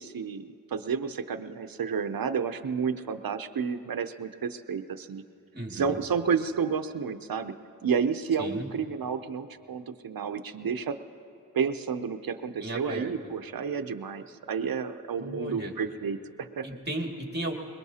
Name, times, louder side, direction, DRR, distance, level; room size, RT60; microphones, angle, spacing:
voice 1, 0.0-5.2 5.7-7.5 7.8-11.0 11.5-16.7, right 6 dB, 90° right, 9 dB, 0.6 m, -31 dB
voice 2, 5.5-6.0 8.4-8.7 12.6-13.3 15.2-15.7 16.6-17.5, right 1 dB, 30° right, 1 dB, 2.1 m, -35 dB
22.5 x 21.0 x 2.8 m, 2.5 s
wide cardioid pair, 45°, 34 cm